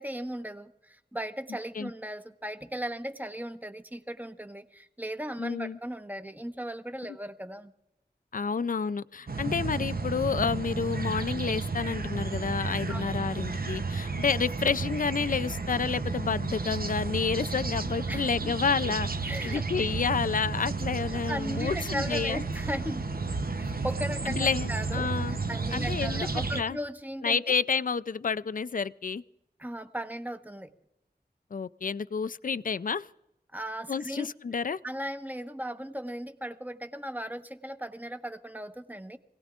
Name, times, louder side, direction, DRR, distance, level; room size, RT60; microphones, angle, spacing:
voice 1, 0.0-7.7 12.9-13.2 18.1-18.5 19.3-19.6 21.3-23.2 23.6-27.5 29.6-30.7 33.5-34.3 34.8-39.2, equal, 10° right, 6 dB, 1.1 m, -37 dB
voice 2, 5.4-5.8 8.3-22.4 24.3-25.4 25.7-26.3 26.5-26.8 27.2-29.2 31.5-33.1 33.9-34.8, left 5 dB, 50° left, 16 dB, 0.4 m, -30 dB
sound 1, 9.3-26.6, right 3 dB, 60° right, 0.8 m, -32 dB
25.0 x 18.0 x 2.5 m, 0.89 s
wide cardioid pair, 45°, 18 cm